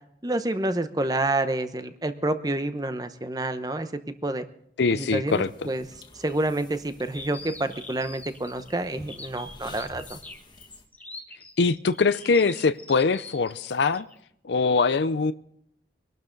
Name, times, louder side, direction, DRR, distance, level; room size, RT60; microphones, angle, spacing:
voice 1, 0.2-3.9 4.2-4.4 4.9-5.8 6.2-10.2, right 2 dB, 20° right, 10 dB, 0.8 m, -28 dB
voice 2, 4.8-5.5 11.6-14.1 14.4-15.3, left 4 dB, 80° left, 14 dB, 0.5 m, -23 dB
sound 1, 5.3-10.9, left 2 dB, 25° left, 1.7 m, -49 dB
sound 2, 7.1-14.2, left 3 dB, 10° left, 1.1 m, -44 dB
24.0 x 12.0 x 3.9 m, 0.71 s
head